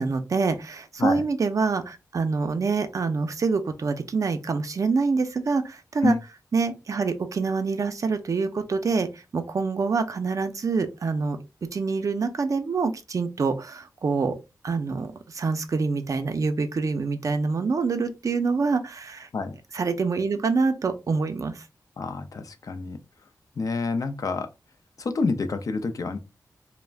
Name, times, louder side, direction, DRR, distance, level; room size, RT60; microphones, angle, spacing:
voice 1, 0.0-6.2 6.5-11.4 11.7-14.3 14.6-19.3 19.7-21.6, right 4 dB, 55° right, 0.4 m, -26 dB
voice 2, 22.0-23.0 23.6-24.5 25.0-26.2, left 4 dB, 60° left, 0.4 m, -27 dB
2.4 x 2.0 x 3.2 m
wide cardioid pair, 85°, 7 cm